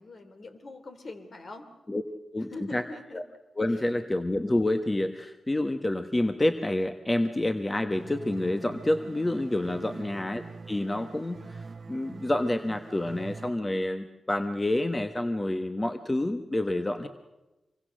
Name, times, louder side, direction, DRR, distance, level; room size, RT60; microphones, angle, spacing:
voice 1, 0.0-1.7 2.4-3.2 3.7-3.9 9.9-10.2, left 2 dB, 60° left, 7 dB, 3.1 m, -43 dB
voice 2, 2.3-2.8 3.6-10.4 10.7-11.4 11.9-17.1, left 1 dB, 25° left, 8 dB, 1.3 m, -28 dB
sound 1, 7.9-13.5, right 4 dB, 55° right, 1.0 m, -44 dB
26.0 x 23.0 x 6.5 m, 1.0 s
cardioid pair, 55°, 0 cm